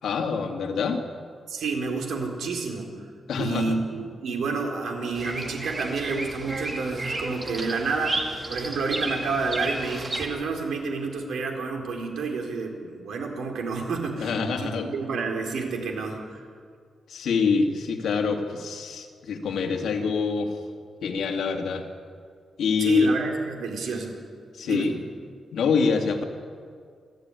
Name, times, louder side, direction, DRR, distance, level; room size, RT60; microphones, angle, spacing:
voice 1, 0.0-1.0 3.3-3.7 14.2-14.9 17.1-20.5 21.0-21.9 22.6-23.1 24.5-25.0 25.5-26.2, left 5 dB, 75° left, 3 dB, 2.5 m, -25 dB
voice 2, 1.5-2.9 3.4-16.4 22.8-24.2 24.6-24.9, right 4 dB, 80° right, 2 dB, 4.1 m, -30 dB
Bird vocalization bird call bird song, 5.1-10.2, right 2 dB, 25° right, 2.2 m, -32 dB
28.5 x 12.5 x 9.8 m, 2.1 s
wide cardioid pair, 180°, 0 cm